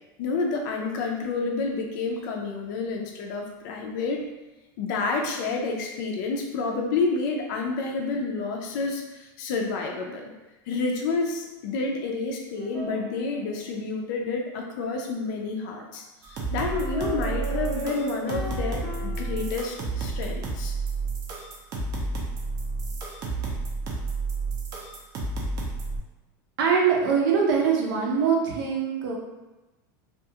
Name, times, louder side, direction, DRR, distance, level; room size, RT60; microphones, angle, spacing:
voice 1, 0.2-4.2 4.8-10.3 10.7-16.0 16.5-20.7, left 3 dB, 60° left, 1 dB, 0.4 m, -29 dB
sound 1, 12.5-14.2 16.7-19.9, right 1 dB, 15° left, 0.7 m, -38 dB
sound 2, 16.2-26.0, right 3 dB, 30° right, 0.4 m, -31 dB
voice 2, 26.6-29.1, right 6 dB, 75° right, -2 dB, 0.7 m, -23 dB
2.4 x 2.3 x 2.7 m, 1.1 s
supercardioid pair, 170°, 11 cm